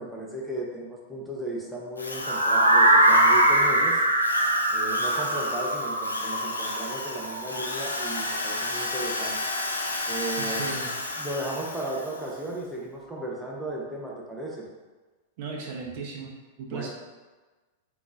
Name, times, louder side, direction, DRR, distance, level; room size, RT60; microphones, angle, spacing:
voice 1, 0.0-4.0 4.7-9.4 10.1-10.7 11.2-14.7 16.7-16.9, right 1 dB, 5° right, -4 dB, 0.8 m, -35 dB
Drill, 2.0-12.4, left 2 dB, 85° left, 0.4 m, -33 dB
sound 1, 2.2-8.2, right 1 dB, 90° right, 0.4 m, -22 dB
voice 2, 10.4-10.9 15.4-16.9, right 4 dB, 50° right, -1 dB, 0.8 m, -36 dB
3.7 x 3.0 x 2.5 m, 1.3 s
figure-of-eight pair, 95°, 0 cm